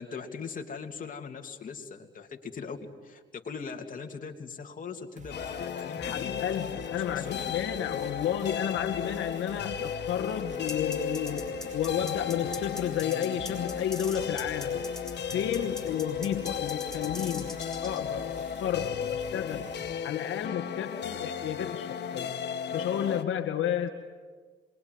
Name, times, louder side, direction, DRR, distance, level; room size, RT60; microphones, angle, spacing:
voice 1, 0.0-2.8 3.0-6.3 7.2-7.5, left 5 dB, 40° left, 2 dB, 3.1 m, -40 dB
sound 1, 5.2-19.9, right 4 dB, 35° right, 2.8 m, -49 dB
sound 2, 5.3-23.2, left 8 dB, 60° left, 1.7 m, -35 dB
voice 2, 6.0-14.8 15.3-17.6 17.8-19.7 20.0-22.3 22.7-23.9, left 9 dB, 80° left, 4 dB, 1.9 m, -32 dB
sound 3, 10.7-18.0, left 1 dB, ahead, 6.5 m, -41 dB
27.0 x 22.5 x 9.7 m, 1.5 s
cardioid pair, 90°, 20 cm